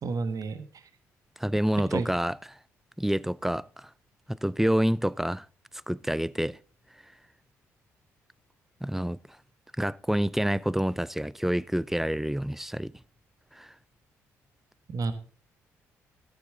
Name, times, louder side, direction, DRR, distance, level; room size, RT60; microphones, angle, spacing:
voice 1, 0.0-0.7 1.9-2.1 14.9-15.1, right 4 dB, 50° right, 1.2 m, -30 dB
voice 2, 1.4-2.4 3.0-3.9 4.3-5.5 5.9-6.6 8.8-9.2 9.8-12.9 13.5-13.7, right 1 dB, 5° right, 0.4 m, -27 dB
13.0 x 10.0 x 3.8 m
hypercardioid pair, 45°, 8 cm